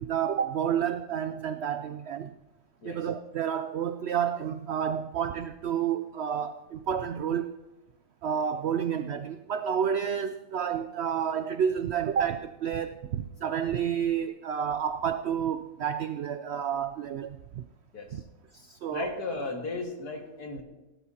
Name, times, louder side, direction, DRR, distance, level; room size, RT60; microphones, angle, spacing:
voice 1, 0.0-2.3 2.8-7.5 8.2-17.6 18.1-18.2 18.5-19.1, right 8 dB, 80° right, 10 dB, 0.5 m, -30 dB
voice 2, 17.9-18.2 18.9-20.6, left 3 dB, 80° left, 2 dB, 2.4 m, -35 dB
17.5 x 12.0 x 2.8 m, 1.0 s
omnidirectional pair, 1.7 m